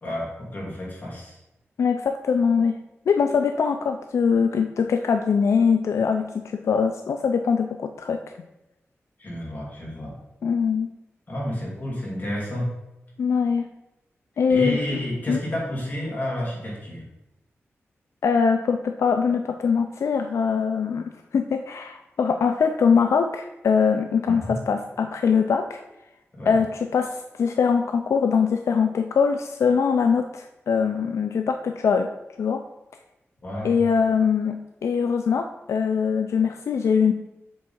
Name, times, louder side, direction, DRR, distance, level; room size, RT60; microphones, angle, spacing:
voice 1, 0.0-1.4 9.2-10.1 11.3-12.7 14.5-17.0 24.3-24.5 26.4-26.6 33.4-33.8, equal, 40° left, -4 dB, 2.4 m, -30 dB
voice 2, 1.8-2.8 3.1-8.2 10.4-10.9 13.2-13.7 14.4-15.4 18.2-25.8 26.5-32.1 32.4-32.6 33.6-37.1, left 6 dB, 80° left, 6 dB, 0.4 m, -22 dB
7.5 x 3.6 x 4.3 m, 0.94 s
wide cardioid pair, 160°, 5 cm